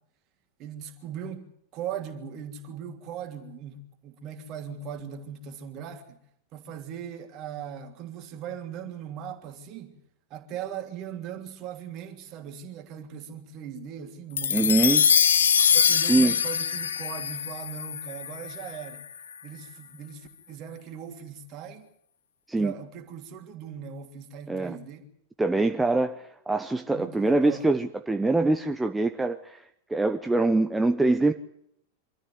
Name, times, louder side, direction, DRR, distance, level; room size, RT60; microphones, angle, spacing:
voice 1, 0.6-1.5 1.7-6.2 6.5-10.0 10.3-14.8 15.7-19.0 19.4-21.9 22.6-25.1 26.9-27.6, right 8 dB, 40° right, 3.1 m, -39 dB
sound 1, 14.4-18.9, left 7 dB, 65° left, 1.1 m, -23 dB
voice 2, 14.5-15.1 16.0-16.4 22.5-22.7 24.5-24.8 25.4-31.3, right 2 dB, 10° right, 1.0 m, -24 dB
25.5 x 13.5 x 9.5 m
figure-of-eight pair, 90°, 0 cm